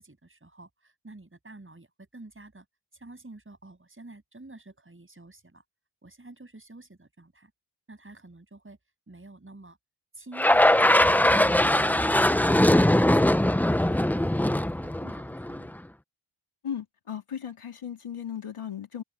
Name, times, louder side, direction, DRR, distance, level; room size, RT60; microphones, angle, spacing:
voice 1, 0.0-2.7 2.9-5.6 6.0-7.5 7.9-8.8 9.1-9.8 10.1-13.3 13.8-15.8, right 2 dB, 25° right, 7.8 m, -49 dB
sound 1, 10.4-15.7, left 1 dB, 5° left, 0.4 m, -21 dB
voice 2, 16.6-19.0, left 8 dB, 85° left, 2.9 m, -36 dB
open air
wide cardioid pair, 125°, 49 cm